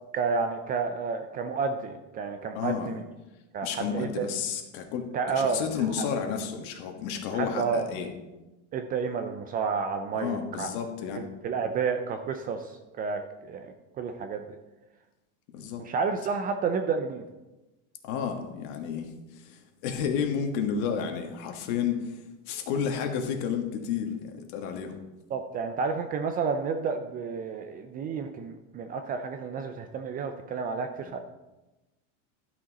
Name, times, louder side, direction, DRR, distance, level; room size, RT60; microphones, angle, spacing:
voice 1, 0.1-3.0 3.5-4.3 5.1-5.6 6.0-6.1 7.3-7.9 8.7-10.7 11.1-14.4 15.8-17.2 25.3-31.2, right 5 dB, 25° right, 7 dB, 0.4 m, -30 dB
voice 2, 2.5-2.9 3.6-8.1 10.1-11.2 15.5-15.8 18.0-25.0 31.0-31.1, left 7 dB, 55° left, 5 dB, 1.6 m, -31 dB
11.5 x 6.3 x 4.1 m, 1.0 s
supercardioid pair, 145°, 38 cm